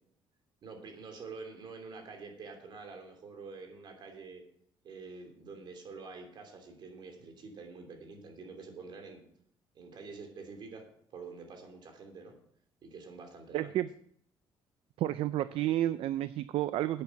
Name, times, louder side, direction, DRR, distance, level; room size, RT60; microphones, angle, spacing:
voice 1, 0.6-4.4 4.8-9.2 9.7-10.8 11.1-12.4 12.8-13.7, right 4 dB, 50° right, 4 dB, 3.0 m, -47 dB
voice 2, 13.5-13.9 15.0-17.0, right 13 dB, 70° right, 14 dB, 0.4 m, -31 dB
10.5 x 8.6 x 5.9 m, 0.68 s
cardioid pair, 145°, 10 cm